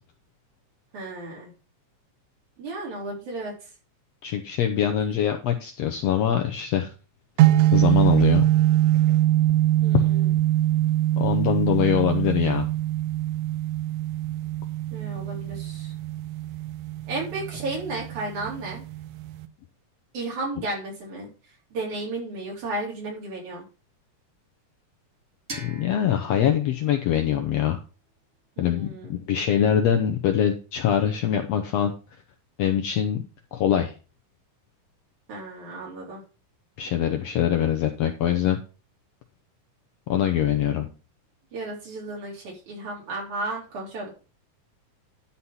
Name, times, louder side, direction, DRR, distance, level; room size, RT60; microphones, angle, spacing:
voice 1, 0.9-1.5 2.6-3.5 9.8-10.4 14.9-15.9 17.1-18.8 20.1-21.3 21.7-23.6 28.6-29.1 35.3-36.2 41.5-44.1, right 2 dB, 65° right, -3 dB, 5.1 m, -33 dB
voice 2, 4.2-6.9 7.7-8.4 9.9-10.0 11.2-12.6 25.6-27.8 28.6-31.9 32.6-33.9 36.8-38.6 40.1-40.9, left 10 dB, 75° left, 5 dB, 1.6 m, -23 dB
sound 1, 7.4-19.5, right 14 dB, 85° right, 2.2 m, -23 dB
sound 2, 25.5-28.3, right 2 dB, 35° right, 1.2 m, -44 dB
11.0 x 4.3 x 5.5 m, 0.34 s
omnidirectional pair, 3.7 m